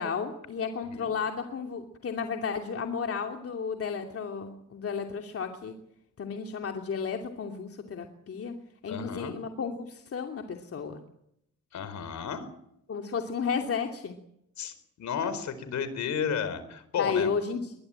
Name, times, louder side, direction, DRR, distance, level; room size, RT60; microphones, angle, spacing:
voice 1, 0.0-5.7 6.2-8.5 8.8-11.0 12.9-14.2 17.0-17.7, left 6 dB, 50° left, 4 dB, 2.8 m, -33 dB
voice 2, 8.9-9.3 11.7-12.5 14.6-17.3, left 7 dB, 65° left, 13 dB, 4.5 m, -33 dB
22.0 x 21.5 x 9.1 m, 0.76 s
cardioid pair, 90°, 30 cm